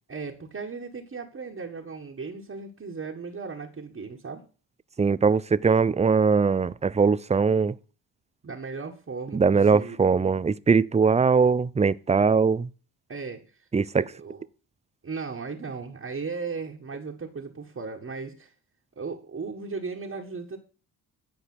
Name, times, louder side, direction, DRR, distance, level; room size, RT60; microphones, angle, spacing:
voice 1, 0.1-4.4 8.4-10.0 13.1-13.7 13.9-14.5 15.0-18.5 19.0-20.6, right 4 dB, 35° right, 1.7 m, -36 dB
voice 2, 5.0-7.7 9.3-12.7 13.7-14.0, right 5 dB, 15° right, 0.5 m, -21 dB
11.0 x 5.0 x 7.8 m
cardioid pair, 80°, 41 cm